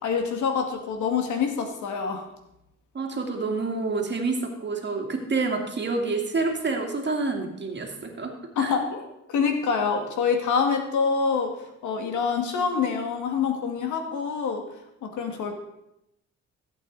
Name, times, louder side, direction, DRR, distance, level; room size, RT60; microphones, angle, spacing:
voice 1, 0.0-2.3 8.6-11.5 11.8-14.6 15.0-15.5, left 5 dB, 75° left, 4 dB, 2.1 m, -26 dB
voice 2, 2.9-8.3 8.6-8.7, right 3 dB, 35° right, 3 dB, 2.3 m, -28 dB
15.5 x 8.3 x 4.1 m, 0.85 s
cardioid pair, 90°, 30 cm